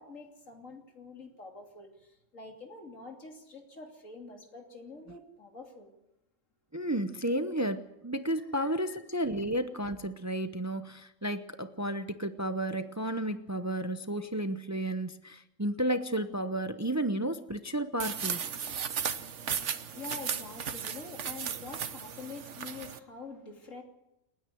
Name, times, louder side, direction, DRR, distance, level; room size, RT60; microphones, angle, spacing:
voice 1, 0.0-5.9 8.4-9.0 19.5-23.8, left 3 dB, 85° left, 3.3 m, -46 dB
voice 2, 6.7-18.4, right 1 dB, 15° right, 0.7 m, -32 dB
sound 1, 18.0-23.0, right 7 dB, 70° right, 1.3 m, -35 dB
29.0 x 9.9 x 9.3 m
omnidirectional pair, 1.3 m